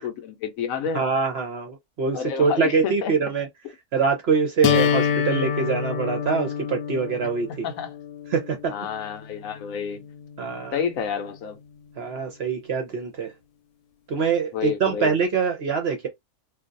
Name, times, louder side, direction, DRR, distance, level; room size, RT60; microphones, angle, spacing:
voice 1, 0.0-1.1 2.1-3.1 7.6-7.9 8.7-10.0 10.7-11.6 14.5-15.1, left 7 dB, 70° left, 1.0 m, -29 dB
voice 2, 0.9-3.5 3.9-7.7 8.3-8.7 10.4-10.8 12.0-13.3 14.1-16.1, right 5 dB, 55° right, 0.8 m, -24 dB
sound 1, 4.6-10.6, left 8 dB, 90° left, 1.1 m, -27 dB
2.5 x 2.3 x 3.8 m
omnidirectional pair, 1.6 m